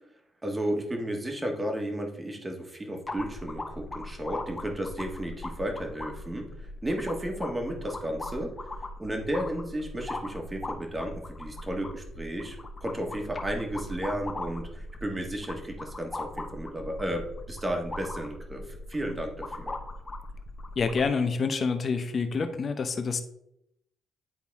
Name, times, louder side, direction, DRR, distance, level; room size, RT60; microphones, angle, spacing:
voice 1, 0.4-8.5 9.0-19.7, right 1 dB, 20° right, 3 dB, 1.6 m, -33 dB
sound 1, 3.1-21.1, left 2 dB, 30° left, 1.1 m, -39 dB
voice 2, 20.8-23.2, left 5 dB, 45° left, 8 dB, 0.8 m, -27 dB
10.0 x 4.1 x 3.6 m, 0.77 s
cardioid pair, 90°, 0 cm